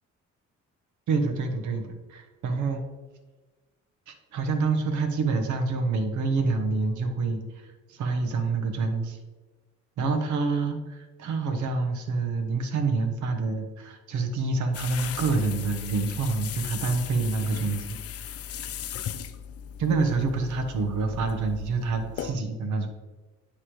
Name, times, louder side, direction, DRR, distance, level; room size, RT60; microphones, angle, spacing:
voice 1, 1.1-2.8 4.1-9.2 10.0-18.3 19.8-22.9, right 3 dB, 75° right, 5 dB, 1.0 m, -27 dB
sound 1, 14.7-22.3, left 9 dB, 50° left, 0.5 m, -37 dB
9.7 x 3.2 x 3.1 m, 1.3 s
cardioid pair, 90°, 30 cm